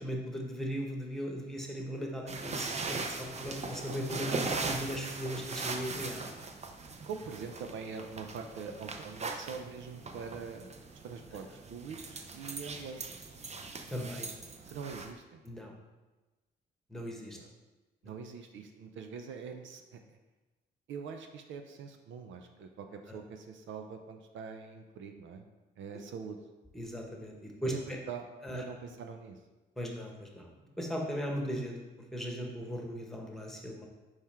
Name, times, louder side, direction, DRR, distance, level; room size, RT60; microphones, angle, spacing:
voice 1, 0.0-6.4 13.9-14.3 15.4-15.7 16.9-17.4 26.7-28.0 28.4-28.6 29.8-30.5 30.8-31.8 32.1-33.9, equal, ahead, 0 dB, 1.3 m, -38 dB
sound 1, 2.3-15.1, right 3 dB, 35° right, 0.7 m, -40 dB
voice 2, 7.0-10.7 11.0-13.2 14.7-15.4 17.3-17.5 18.0-20.2 20.9-25.5 25.8-26.4 27.6-29.4, right 5 dB, 75° right, 5 dB, 0.7 m, -43 dB
5.6 x 4.9 x 4.4 m, 1.1 s
cardioid pair, 90°, 20 cm